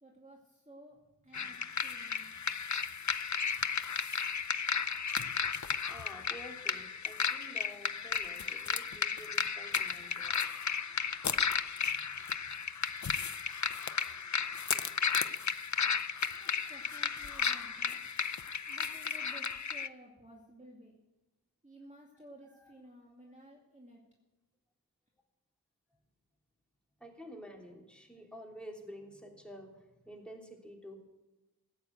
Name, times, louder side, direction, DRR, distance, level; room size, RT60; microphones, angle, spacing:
voice 1, 0.0-1.0 1.2-2.6 16.4-18.0 18.6-20.9 21.6-24.0, right 1 dB, 20° right, -2 dB, 2.4 m, -55 dB
sound 1, 1.3-19.9, left 6 dB, 50° left, 0.6 m, -34 dB
voice 2, 5.9-10.5 11.7-12.7 22.6-22.7 25.9-26.0 27.0-31.0, equal, 5° left, 0 dB, 3.2 m, -50 dB
16.0 x 8.9 x 8.0 m, 1.1 s
wide cardioid pair, 50°, 38 cm